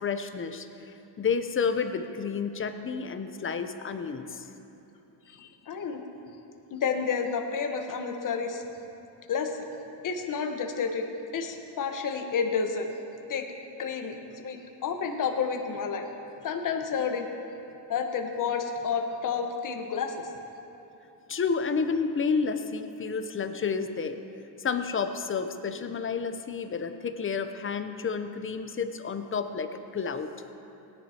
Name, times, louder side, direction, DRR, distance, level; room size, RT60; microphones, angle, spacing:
voice 1, 0.0-0.7 1.2-4.5 21.3-24.2 24.6-30.3, left 5 dB, 30° left, 8 dB, 0.8 m, -30 dB
voice 2, 5.3-6.0 6.7-8.6 9.3-9.5 10.0-12.9 13.3-13.5 13.8-16.1 16.4-17.3 17.9-20.3, left 6 dB, 45° left, 4 dB, 1.2 m, -30 dB
18.0 x 10.5 x 2.9 m, 2.9 s
cardioid pair, 95°, 45 cm